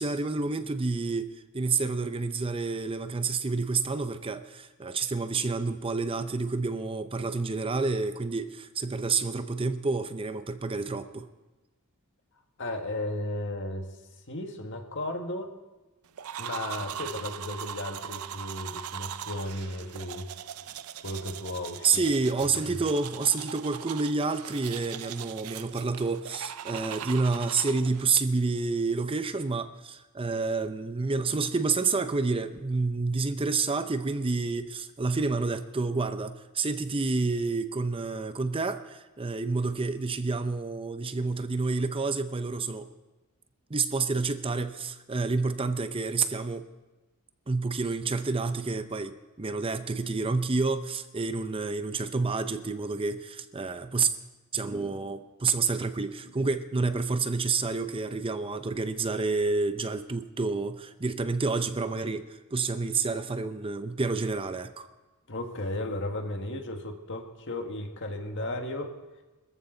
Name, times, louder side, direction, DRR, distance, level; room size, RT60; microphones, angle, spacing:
voice 1, 0.0-11.3 21.8-42.9 43.7-46.7 47.5-54.1 54.5-64.9, right 4 dB, 25° right, 10 dB, 0.6 m, -29 dB
voice 2, 12.6-13.9 14.3-15.5 16.4-20.3 21.0-22.1 22.4-22.8 65.3-69.0, left 1 dB, 55° left, 4 dB, 1.7 m, -35 dB
sound 1, 16.2-28.1, right 9 dB, 75° right, 0.5 m, -40 dB
23.5 x 14.5 x 3.9 m, 1.1 s
head